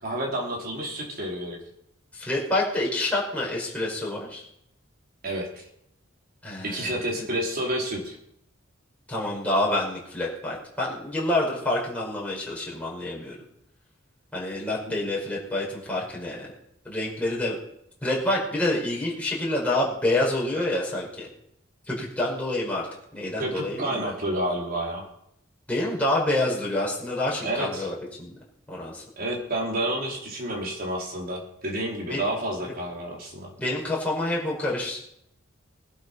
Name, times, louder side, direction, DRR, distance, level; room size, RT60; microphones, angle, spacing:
voice 1, 0.0-1.6 5.2-5.5 6.6-8.2 23.4-25.1 27.4-27.9 29.2-33.5, right 1 dB, 50° right, -1 dB, 4.6 m, -29 dB
voice 2, 2.1-4.5 6.4-7.1 9.1-13.4 14.3-16.5 16.8-17.6 18.0-21.3 21.9-22.9 23.1-24.1 25.7-28.4 28.7-29.0 32.0-32.2 33.6-35.0, left 1 dB, 5° left, -4 dB, 5.5 m, -27 dB
19.5 x 12.0 x 5.6 m, 0.75 s
head